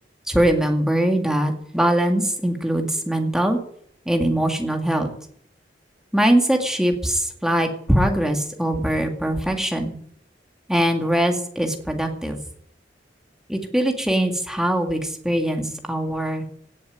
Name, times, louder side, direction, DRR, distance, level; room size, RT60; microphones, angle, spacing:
voice 1, 0.3-3.6 4.1-5.1 6.1-9.9 10.7-12.4 13.5-16.5, right 1 dB, 5° right, 3 dB, 2.0 m, -22 dB
17.5 x 7.3 x 9.2 m, 0.67 s
head